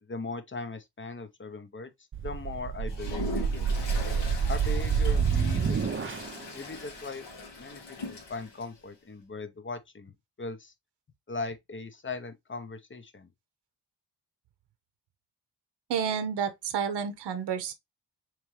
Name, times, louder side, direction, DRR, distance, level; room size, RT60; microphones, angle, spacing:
voice 1, 0.0-1.9 2.2-3.7 4.5-6.0 6.5-7.3 7.6-10.7 11.3-13.3, left 3 dB, 25° left, 0.8 m, -39 dB
sound 1, 2.1-6.4, right 6 dB, 30° right, 0.6 m, -28 dB
Toilet flush, 2.9-8.7, left 3 dB, 75° left, 1.3 m, -40 dB
voice 2, 15.9-17.7, right 7 dB, 65° right, 0.8 m, -30 dB
3.5 x 3.1 x 3.1 m
cardioid pair, 50°, 43 cm